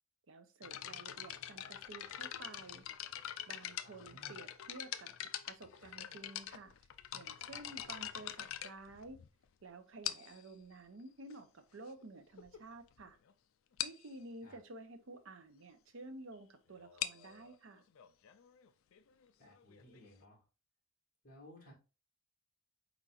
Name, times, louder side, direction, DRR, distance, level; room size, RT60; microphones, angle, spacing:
voice 1, 0.3-2.9 3.5-5.1 5.5-6.7 7.1-9.2 9.6-13.2 13.8-17.8, right 2 dB, 65° right, 0.6 m, -52 dB
sound 1, 0.6-9.4 10.0-10.5 11.3-11.4 12.0-12.1 12.4-12.6 12.9-13.0 13.3-13.4 13.8-14.1 16.8-20.2, left 11 dB, 65° left, 0.4 m, -44 dB
voice 2, 3.8-4.4 14.4-14.6 19.4-20.4 21.2-21.7, left 1 dB, 40° left, 1.7 m, -58 dB
4.4 x 4.0 x 2.4 m
head